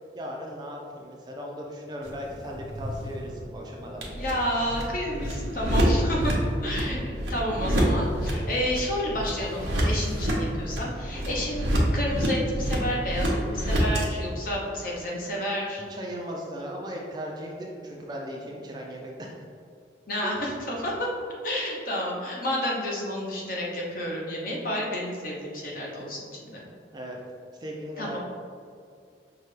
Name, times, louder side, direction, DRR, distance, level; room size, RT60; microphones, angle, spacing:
voice 1, 0.1-4.0 5.1-5.3 6.9-7.1 11.1-11.4 15.9-19.4 20.2-20.3 26.9-27.2 27.6-28.2, equal, 25° right, -1 dB, 0.4 m, -37 dB
sound 1, 2.0-14.0, equal, 85° right, 0.8 m, -28 dB
voice 2, 4.1-6.3 6.6-15.8 20.1-21.1 21.4-26.6 28.0-28.2, equal, 50° left, -3 dB, 0.8 m, -30 dB
5.6 x 2.2 x 3.2 m, 2.2 s
head